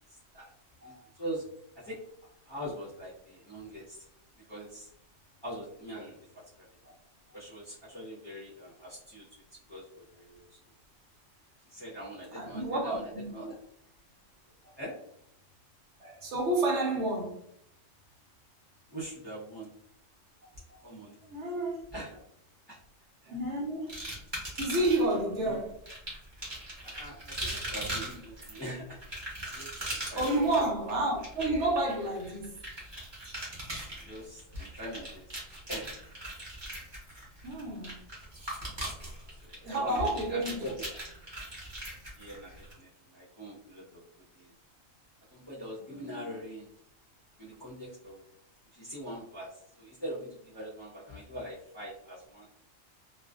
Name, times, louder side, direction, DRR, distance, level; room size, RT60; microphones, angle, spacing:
voice 1, 0.1-0.5 0.8-1.5 1.8-2.0 2.4-4.1 4.5-4.9 5.4-6.7 7.3-9.2 9.7-10.6 11.7-13.6 14.8-15.0 18.9-19.7 20.8-21.1 21.9-22.2 22.7-22.8 25.4-25.6 26.8-29.0 29.5-30.4 34.0-35.3 35.7-36.1 39.0-39.1 39.4-40.0 40.3-41.0 42.2-44.0 44.3-44.5 45.3-46.7 47.4-48.2 48.7-52.5, equal, 30° left, 0.6 m, -42 dB
voice 2, 12.3-13.2 14.6-14.7 16.0-17.4 20.7-20.8 21.3-21.8 23.3-23.9 24.6-25.8 30.1-32.6 37.4-37.9 39.6-40.6 45.9-46.2, right 2 dB, 65° right, 0.9 m, -30 dB
sound 1, 23.9-25.2 25.9-42.7, right 1 dB, 25° right, 0.8 m, -40 dB
2.4 x 2.3 x 2.3 m
omnidirectional pair, 1.3 m